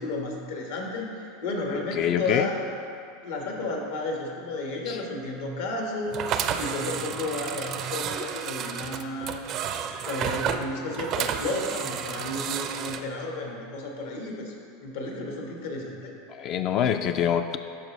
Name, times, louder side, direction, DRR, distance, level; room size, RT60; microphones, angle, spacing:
voice 1, 0.0-2.6 3.2-6.2 6.6-9.4 10.0-14.5 14.8-16.1, left 2 dB, 80° left, -1 dB, 1.4 m, -32 dB
voice 2, 2.0-2.5 4.9-5.0 16.3-17.6, left 9 dB, 50° left, 8 dB, 0.3 m, -25 dB
sound 1, 6.1-13.0, right 8 dB, 45° right, 0.4 m, -31 dB
12.0 x 4.4 x 3.1 m, 2.5 s
hypercardioid pair, 110°, 0 cm